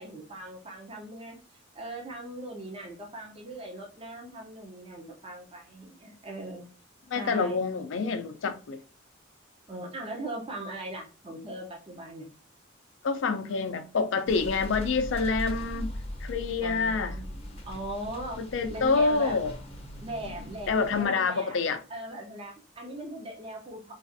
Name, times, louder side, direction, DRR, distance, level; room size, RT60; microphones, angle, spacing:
voice 1, 0.0-1.4 1.7-6.7 7.1-7.6 9.7-12.3 13.4-13.7 16.6-17.4 17.7-18.4 18.7-19.4 20.0-21.6 21.9-23.9, right 1 dB, 30° right, 0.7 m, -39 dB
voice 2, 7.1-8.8 13.0-15.9 16.2-17.1 18.5-19.5 20.7-21.8, left 4 dB, 70° left, 0.4 m, -27 dB
sound 1, 14.3-21.0, equal, 30° left, 0.7 m, -39 dB
4.0 x 2.4 x 2.6 m
head